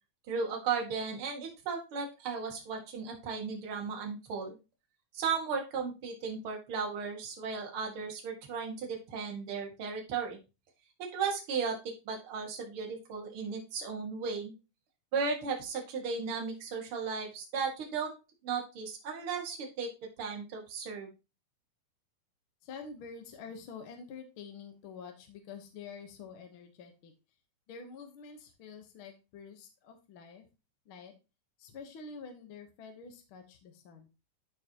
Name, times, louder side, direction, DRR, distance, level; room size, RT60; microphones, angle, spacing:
voice 1, 0.3-4.6 5.1-10.4 11.0-14.5 15.1-18.1 18.4-19.9 20.2-21.1, right 5 dB, 45° right, 1 dB, 2.4 m, -35 dB
voice 2, 22.6-27.1 27.7-30.4 30.8-31.1 31.6-34.1, left 5 dB, 60° left, 5 dB, 1.5 m, -47 dB
13.0 x 4.6 x 2.9 m, 0.28 s
omnidirectional pair, 3.6 m